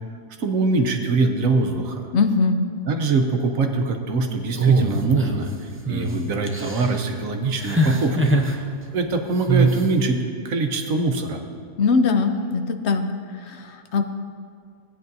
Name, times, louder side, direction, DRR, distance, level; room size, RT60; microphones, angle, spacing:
voice 1, 0.4-2.1 2.9-8.7 8.9-10.2 10.4-11.4, right 3 dB, 90° right, 4 dB, 1.3 m, -23 dB
voice 2, 2.1-2.6 11.8-13.1 13.5-14.0, left 4 dB, 65° left, 7 dB, 0.9 m, -21 dB
sound 1, 4.6-5.5 5.9-6.1 6.5-7.0 7.6-8.5 9.5-9.8, right 3 dB, 15° right, 0.5 m, -21 dB
17.0 x 9.3 x 2.7 m, 2.2 s
omnidirectional pair, 1.3 m